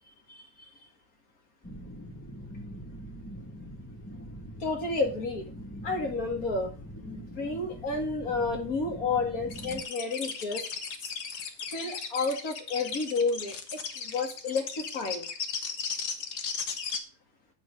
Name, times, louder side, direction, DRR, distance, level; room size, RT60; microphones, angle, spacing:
voice 1, 0.3-0.7 4.6-5.5 5.8-10.6 11.0-11.1 11.7-15.3, left 3 dB, 60° left, 3 dB, 2.5 m, -31 dB
sound 1, 1.6-9.8, equal, 15° left, 0.6 m, -43 dB
sound 2, 9.5-17.0, left 5 dB, 75° left, 1.7 m, -36 dB
8.2 x 6.1 x 6.4 m, 0.36 s
omnidirectional pair, 1.7 m